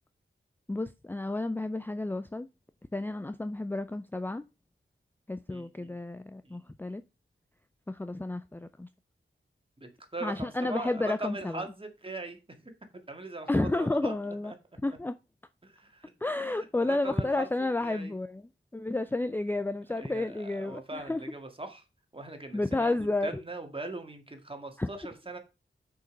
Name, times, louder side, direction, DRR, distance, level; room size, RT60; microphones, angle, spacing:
voice 1, 0.7-2.5 2.9-4.4 5.3-7.0 7.9-8.9 10.2-11.6 13.5-14.5 14.8-15.2 16.2-21.2 22.5-23.4 24.8-24.9, left 2 dB, 10° left, 0.4 m, -31 dB
voice 2, 5.5-6.0 6.4-6.6 9.8-12.6 13.1-14.1 14.4-14.5 15.6-16.1 16.4-17.5 17.8-18.1 19.9-21.8 22.1-23.0 23.2-25.4, right 2 dB, 25° right, 1.9 m, -40 dB
6.6 x 5.2 x 5.2 m
wide cardioid pair, 85°, 21 cm